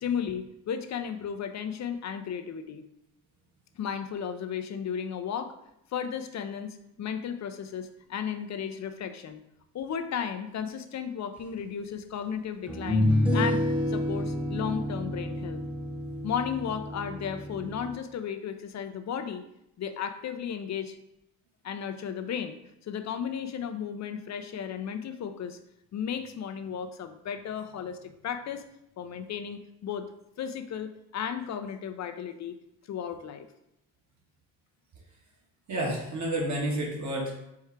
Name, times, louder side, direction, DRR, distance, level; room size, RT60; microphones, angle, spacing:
voice 1, 0.0-2.8 3.8-5.5 5.9-9.4 9.7-15.6 16.2-19.4 19.8-21.0 21.6-22.6 22.8-25.6 25.9-28.6 29.0-30.1 30.4-32.6 32.9-33.5, left 7 dB, 45° left, 9 dB, 0.5 m, -34 dB
sound 1, 11.6-11.7 12.7-17.9, left 1 dB, 5° right, 1.0 m, -29 dB
voice 2, 35.7-37.3, right 1 dB, 50° right, -2 dB, 1.5 m, -30 dB
4.6 x 2.3 x 4.4 m, 0.82 s
supercardioid pair, 65°, 38 cm